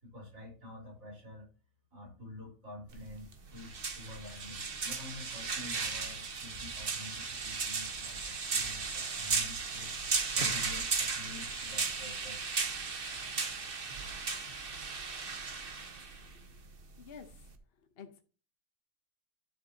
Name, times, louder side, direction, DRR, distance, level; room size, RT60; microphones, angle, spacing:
voice 1, 0.0-1.5 1.9-9.9 10.3-12.4, left 1 dB, 60° right, -1 dB, 4.5 m, -48 dB
sound 1, 2.9-17.5, right 4 dB, 40° right, 1.2 m, -36 dB
voice 2, 17.0-17.4 17.8-18.2, left 6 dB, 45° left, 6 dB, 1.0 m, -51 dB
12.5 x 6.9 x 2.8 m, 0.36 s
omnidirectional pair, 1.6 m